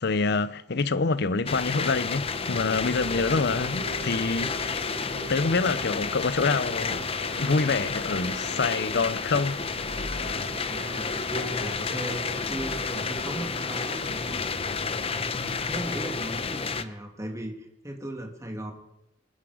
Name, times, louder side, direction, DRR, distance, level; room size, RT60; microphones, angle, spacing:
voice 1, 0.0-4.8 5.3-7.0 7.3-9.6, left 4 dB, 60° left, 0.7 m, -26 dB
sound 1, 1.5-16.8, left 5 dB, 30° left, 0.7 m, -31 dB
sound 2, 2.1-15.2, right 3 dB, 75° right, 1.2 m, -44 dB
voice 2, 10.7-14.5 15.1-18.7, right 1 dB, 15° right, 2.5 m, -37 dB
27.0 x 9.9 x 5.0 m
head